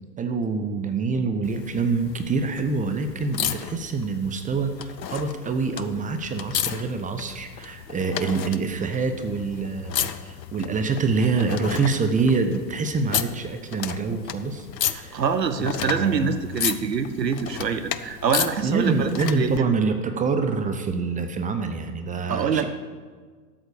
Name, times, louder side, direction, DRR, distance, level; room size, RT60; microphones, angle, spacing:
voice 1, 0.2-15.2 15.6-16.3 18.6-22.7, right 4 dB, 15° right, 8 dB, 0.9 m, -26 dB
sound 1, 1.4-19.6 20.9-21.0, left 9 dB, 80° left, 0.8 m, -33 dB
voice 2, 15.1-19.1 19.4-19.7 22.3-22.7, right 6 dB, 80° right, 10 dB, 1.3 m, -25 dB
12.5 x 8.2 x 6.8 m, 1.5 s
figure-of-eight pair, 100°, 49 cm